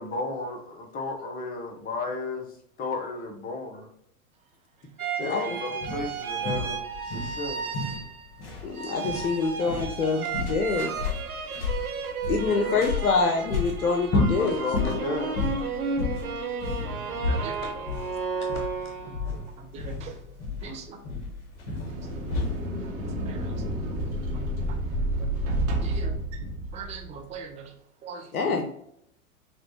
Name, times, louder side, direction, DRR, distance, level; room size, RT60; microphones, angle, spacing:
voice 1, 0.0-2.5 2.8-3.9 5.2-7.9 11.7-11.8 12.5-12.8 14.1-15.6 20.6-20.8, left 3 dB, 20° left, 4 dB, 0.8 m, -34 dB
sound 1, 5.0-8.4 8.7-19.3, right 6 dB, 90° right, 0.8 m, -33 dB
sound 2, 5.8-22.7, left 4 dB, 55° left, 1.6 m, -32 dB
voice 2, 8.6-11.4 12.3-14.6 17.6-17.7 18.4-18.7 19.0-19.2 28.3-28.7, left 4 dB, 85° left, 3 dB, 0.7 m, -26 dB
voice 3, 17.3-17.6 19.0-19.4 19.7-20.1 20.6-21.0 21.9-22.0 23.3-23.5 25.2-25.4 25.8-26.2 26.7-27.7 28.0-28.3, right 6 dB, 15° right, 3 dB, 0.6 m, -40 dB
sound 3, 21.6-27.2, right 1 dB, 35° right, 1.2 m, -30 dB
5.9 x 2.5 x 2.8 m, 0.73 s
hypercardioid pair, 105°, 42 cm